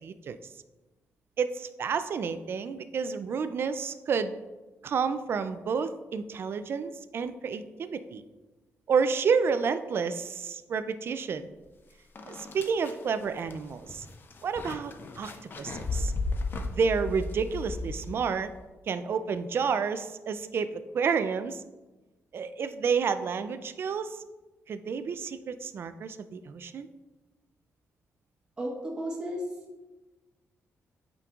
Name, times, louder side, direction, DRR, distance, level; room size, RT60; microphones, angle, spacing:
voice 1, 0.0-0.4 1.4-4.3 4.8-8.2 8.9-11.5 12.3-14.1 14.4-15.3 15.6-16.1 16.7-18.5 18.9-21.6 22.3-24.2 24.7-26.9, right 6 dB, 45° right, 11 dB, 0.3 m, -30 dB
sound 1, 11.7-11.8 12.2-18.5, left 3 dB, 40° left, 0.5 m, -35 dB
voice 2, 28.6-29.4, right 1 dB, 15° right, -4 dB, 1.3 m, -33 dB
8.4 x 5.2 x 2.4 m, 1.2 s
wide cardioid pair, 160°, 5 cm